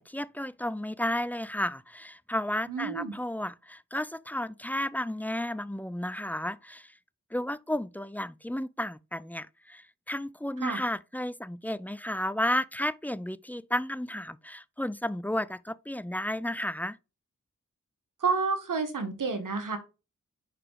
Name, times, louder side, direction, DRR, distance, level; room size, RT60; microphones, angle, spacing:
voice 1, 0.0-6.9 7.3-17.0, left 1 dB, 5° left, 0.4 m, -33 dB
voice 2, 2.7-3.1 10.6-10.8 18.2-19.8, right 4 dB, 80° right, 1.4 m, -29 dB
5.0 x 4.9 x 4.6 m
cardioid pair, 40°, 31 cm